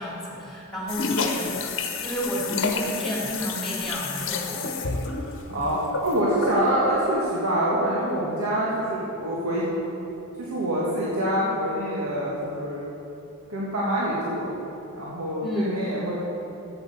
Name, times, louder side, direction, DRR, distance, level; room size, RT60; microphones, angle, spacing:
voice 1, 0.0-1.5 2.0-4.7 15.4-15.8, equal, ahead, -4 dB, 2.6 m, -31 dB
sound 1, 0.9-6.7, left 4 dB, 65° left, 1.0 m, -30 dB
voice 2, 5.0-9.7 10.4-12.8 13.5-14.5 15.0-16.1, right 1 dB, 85° right, -7 dB, 1.7 m, -26 dB
8.1 x 7.8 x 7.7 m, 2.9 s
head